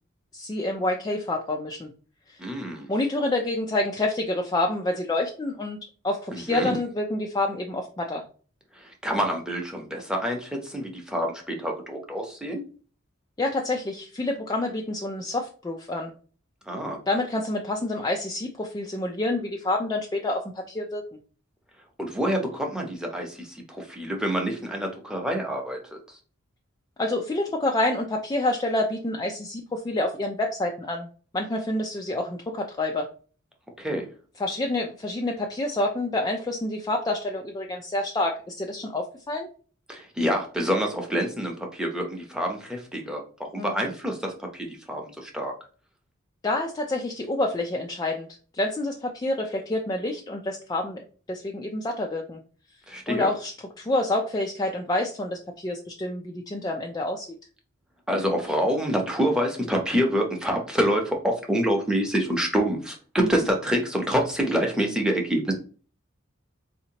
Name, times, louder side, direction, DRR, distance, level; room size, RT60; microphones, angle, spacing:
voice 1, 0.3-1.9 2.3-2.4 2.9-5.8 6.0-8.2 13.4-16.1 17.1-21.0 27.0-31.1 31.3-33.1 34.4-39.5 43.6-43.8 46.4-48.3 48.5-52.4 53.1-57.3 63.2-63.3, left 2 dB, 20° left, 1 dB, 0.4 m, -28 dB
voice 2, 2.4-2.9 6.3-6.7 8.7-12.6 16.7-17.0 22.0-25.8 26.1-26.2 33.8-34.1 39.9-43.2 43.5-45.5 52.9-53.3 58.1-65.5, equal, 5° right, 1 dB, 0.8 m, -27 dB
4.1 x 2.8 x 2.8 m, 0.38 s
head